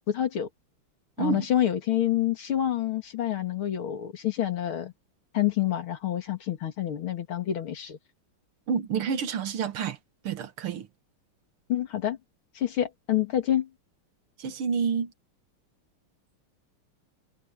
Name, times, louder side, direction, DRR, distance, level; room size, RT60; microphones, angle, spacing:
voice 1, 0.1-0.5 1.2-4.9 5.3-8.0 11.7-12.2 12.5-13.7, left 11 dB, 75° left, 2.8 m, -27 dB
voice 2, 8.7-10.0 10.2-10.9 14.4-15.1, right 6 dB, 80° right, 2.2 m, -29 dB
omnidirectional pair, 2.3 m